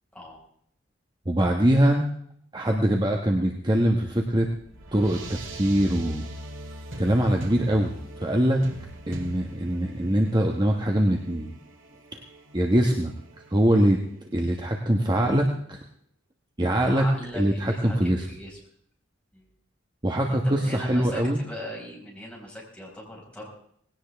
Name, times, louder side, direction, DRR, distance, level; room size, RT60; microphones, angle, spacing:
voice 1, 1.2-2.0 2.5-4.5 4.9-6.2 7.0-8.6 9.1-11.5 12.1-12.2 12.5-13.1 13.5-14.0 14.3-15.8 16.6-17.0 17.3-18.2 20.0-21.4, right 1 dB, 20° right, 2 dB, 1.2 m, -23 dB
sound 1, 4.2-14.6, right 1 dB, 75° right, 2.3 m, -41 dB
voice 2, 16.7-18.6 19.3-19.5 20.3-23.5, equal, 5° left, -4 dB, 5.3 m, -40 dB
19.0 x 17.0 x 3.5 m, 0.67 s
head